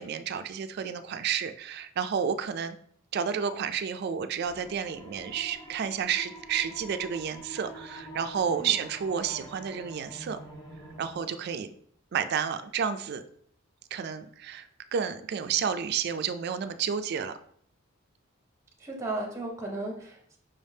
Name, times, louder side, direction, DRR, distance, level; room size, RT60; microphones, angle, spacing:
voice 1, 0.0-2.8 3.1-10.4 11.0-11.7 12.1-13.2 13.9-17.4, right 7 dB, 50° right, 11 dB, 0.3 m, -31 dB
sound 1, 4.4-11.2, right 1 dB, 20° left, 1.3 m, -46 dB
voice 2, 18.8-20.4, right 2 dB, 15° right, 1 dB, 0.6 m, -35 dB
5.3 x 3.4 x 2.7 m, 0.64 s
head